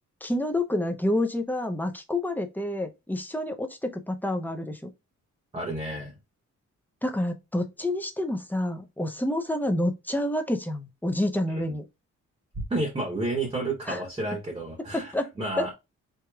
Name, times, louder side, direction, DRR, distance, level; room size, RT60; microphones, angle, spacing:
voice 1, 0.2-4.9 7.0-11.8 13.9-14.0 14.8-15.3 15.6-15.7, left 1 dB, 5° left, 0.4 m, -28 dB
voice 2, 5.5-6.2 11.5-11.6 12.7-15.7, right 2 dB, 15° right, 0.8 m, -31 dB
4.6 x 2.9 x 2.2 m
wide cardioid pair, 180°, 30 cm